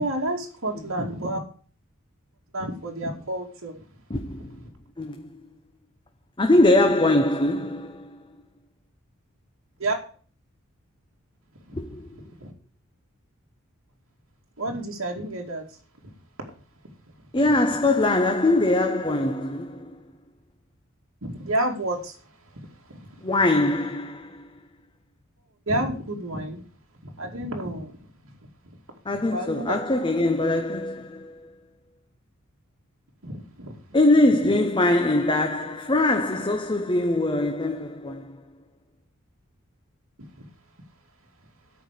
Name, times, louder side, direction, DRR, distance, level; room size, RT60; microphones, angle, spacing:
voice 1, 0.0-1.4 2.5-3.8 9.8-10.0 11.7-11.8 12.4-12.5 14.6-15.8 17.4-17.5 21.2-22.2 22.5-23.3 25.7-26.6 27.0-27.9 28.2-28.3 29.3-29.8 33.2-33.8, right 1 dB, 75° right, 2.4 m, -30 dB
voice 2, 4.1-4.6 5.0-5.4 6.4-8.2 11.7-12.2 17.3-20.0 23.2-24.6 29.0-31.5 33.9-38.4, left 2 dB, 25° left, 0.8 m, -22 dB
13.0 x 4.7 x 8.4 m
head